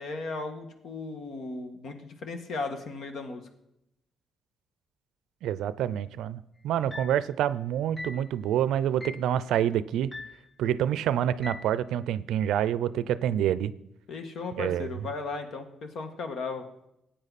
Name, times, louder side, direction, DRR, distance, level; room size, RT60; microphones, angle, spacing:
voice 1, 0.0-3.4 14.1-16.7, left 3 dB, 65° left, 6 dB, 1.7 m, -36 dB
voice 2, 5.4-10.1 10.6-13.7 14.6-14.9, right 10 dB, 85° right, 16 dB, 0.5 m, -27 dB
sound 1, 6.9-7.3 8.0-8.3 9.0-9.3 10.1-10.5 11.4-11.7, left 2 dB, 10° left, 0.5 m, -41 dB
14.0 x 8.8 x 4.2 m, 0.83 s
cardioid pair, 90°, 0 cm